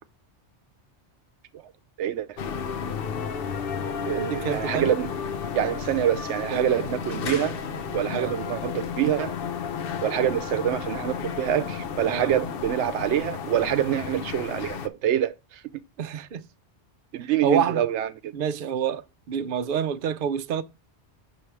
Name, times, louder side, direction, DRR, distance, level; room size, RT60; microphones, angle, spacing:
voice 1, 2.0-2.4 4.0-5.1 5.5-7.6 7.9-9.3 10.0-15.6 17.1-18.3, right 11 dB, 85° right, 0.9 m, -26 dB
sound 1, 2.4-14.9, left 6 dB, 60° left, 0.8 m, -32 dB
voice 2, 4.1-5.0 6.5-6.7 8.1-8.4 12.1-12.3 16.0-16.4 17.2-17.8 18.3-20.6, right 7 dB, 60° right, 0.7 m, -28 dB
6.1 x 3.3 x 5.9 m
omnidirectional pair, 1.1 m